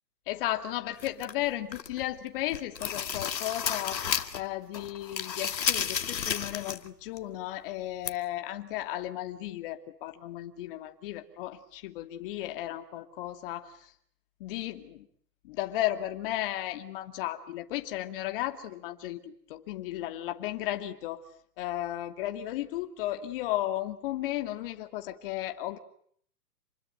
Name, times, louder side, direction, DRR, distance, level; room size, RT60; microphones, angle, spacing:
voice 1, 0.3-4.0 4.3-13.9 14.4-15.1 15.4-21.2 21.6-25.8, left 14 dB, 30° left, 6 dB, 2.5 m, -34 dB
sound 1, 1.0-2.0 2.4-4.5 4.7-6.9 7.2-7.3 8.1-8.2, left 8 dB, 90° left, 2.3 m, -32 dB
28.5 x 21.5 x 9.1 m, 0.63 s
hypercardioid pair, 160°, 49 cm